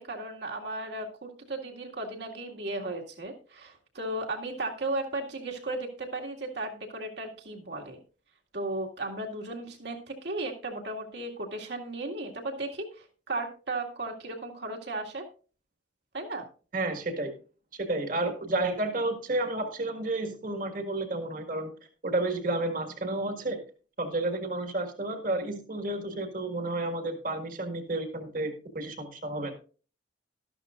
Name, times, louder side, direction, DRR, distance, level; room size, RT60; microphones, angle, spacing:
voice 1, 0.0-8.0 8.5-15.3 16.1-16.5, right 2 dB, 60° right, 1 dB, 2.1 m, -35 dB
voice 2, 16.7-17.3 17.8-21.7 22.0-23.6 24.0-29.5, right 2 dB, 45° right, 7 dB, 1.8 m, -31 dB
13.0 x 12.0 x 2.5 m, 0.37 s
head